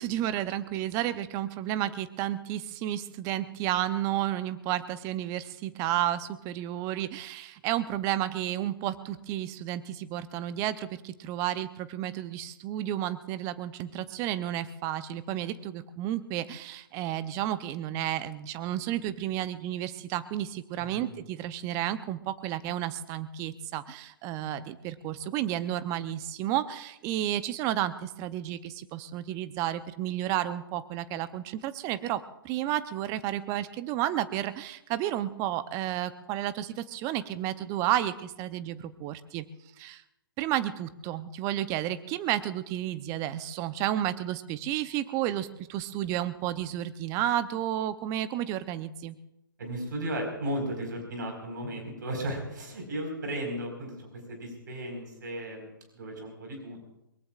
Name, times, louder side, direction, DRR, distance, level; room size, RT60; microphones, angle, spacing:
voice 1, 0.0-39.5 39.8-40.0 40.4-49.2, right 12 dB, 25° right, 13 dB, 0.7 m, -32 dB
voice 2, 49.6-56.9, right 1 dB, 60° right, 2 dB, 4.8 m, -35 dB
22.5 x 22.0 x 2.5 m, 0.87 s
figure-of-eight pair, 125°, 11 cm